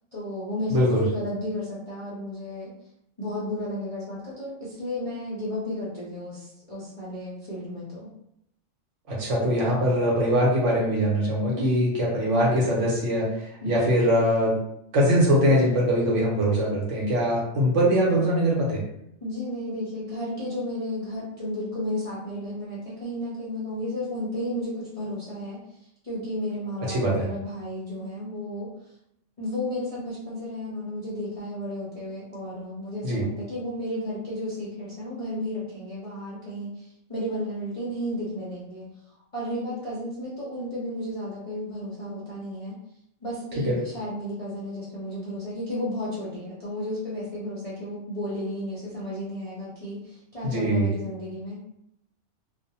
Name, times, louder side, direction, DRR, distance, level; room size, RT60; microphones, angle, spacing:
voice 1, 0.1-2.7 3.2-8.1 11.6-11.8 13.6-13.8 19.2-25.6 26.0-28.7 29.4-38.9 39.3-42.7 43.2-51.6, left 1 dB, 45° left, -9 dB, 0.4 m, -33 dB
voice 2, 0.7-1.0 9.1-11.9 12.1-13.3 13.7-14.6 14.9-18.8 26.9-27.2 33.0-33.2 43.7-43.8 50.4-50.9, equal, 65° right, -4 dB, 1.0 m, -22 dB
2.5 x 2.0 x 2.7 m, 0.77 s
omnidirectional pair, 1.5 m